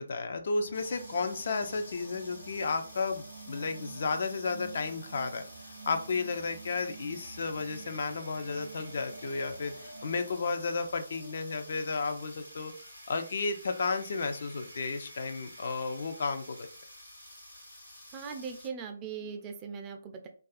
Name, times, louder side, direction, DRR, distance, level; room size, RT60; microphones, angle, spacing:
voice 1, 0.0-5.4 5.9-12.7 13.1-16.7, left 4 dB, 50° left, 7 dB, 0.3 m, -33 dB
sound 1, 0.6-17.2, right 4 dB, 70° right, 0.6 m, -50 dB
sound 2, 0.7-18.7, left 1 dB, 85° left, 1.0 m, -51 dB
voice 2, 18.1-20.3, right 6 dB, 20° right, 4 dB, 0.3 m, -40 dB
2.3 x 2.2 x 2.4 m, 0.40 s
figure-of-eight pair, 140°, 0 cm